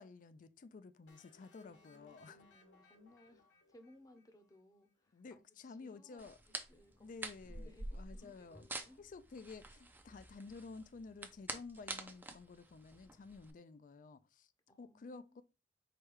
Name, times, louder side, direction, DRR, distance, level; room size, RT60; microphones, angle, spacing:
voice 1, 0.0-2.4 5.1-6.4 7.0-8.7 9.0-14.5 14.8-15.4, left 4 dB, 50° left, 0.4 m, -52 dB
sound 1, 1.1-4.8, left 3 dB, 75° left, 1.4 m, -67 dB
voice 2, 1.6-3.4 3.7-7.1 7.4-9.0 14.7-15.4, left 1 dB, 20° left, 0.7 m, -63 dB
sound 2, 6.2-13.5, right 2 dB, 10° right, 0.5 m, -48 dB
4.8 x 2.3 x 4.5 m
head